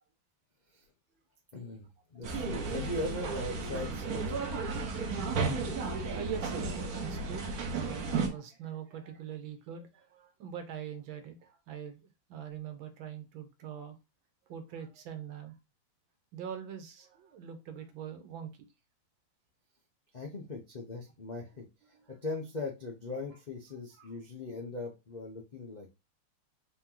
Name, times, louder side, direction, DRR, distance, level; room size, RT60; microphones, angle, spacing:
voice 1, 1.5-4.4 20.1-25.9, left 2 dB, 75° left, 0.4 m, -40 dB
sound 1, 2.2-8.3, right 4 dB, 55° right, 1.2 m, -34 dB
voice 2, 5.9-12.0 12.3-14.0 14.5-15.5 16.3-18.6 24.0-24.1, right 8 dB, 80° right, 1.7 m, -43 dB
4.3 x 2.9 x 3.7 m
omnidirectional pair, 2.1 m